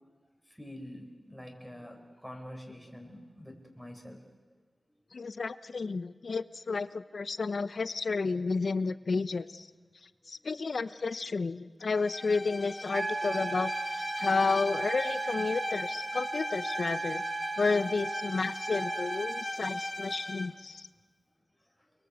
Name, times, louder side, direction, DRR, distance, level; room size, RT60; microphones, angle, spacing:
voice 1, 0.5-4.2 21.8-21.9, equal, ahead, 3 dB, 4.7 m, -46 dB
voice 2, 5.1-9.7 10.3-17.2 17.6-20.9, left 4 dB, 70° left, 14 dB, 0.9 m, -31 dB
Bowed string instrument, 11.9-20.6, left 1 dB, 20° left, 1.5 m, -38 dB
Wind instrument woodwind instrument, 12.9-19.5, right 4 dB, 70° right, 1.1 m, -37 dB
29.5 x 22.0 x 8.2 m, 1.5 s
wide cardioid pair, 80°, 0 cm